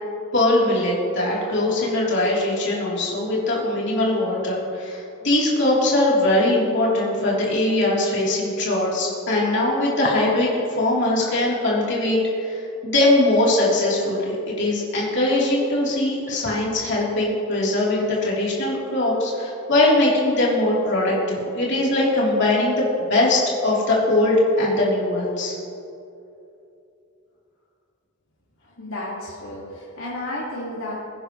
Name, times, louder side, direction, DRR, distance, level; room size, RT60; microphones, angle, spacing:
voice 1, 0.3-25.5, left 1 dB, 55° left, -5 dB, 3.5 m, -21 dB
voice 2, 28.6-30.9, left 1 dB, 75° left, -6 dB, 2.2 m, -32 dB
23.0 x 9.8 x 3.2 m, 2.7 s
head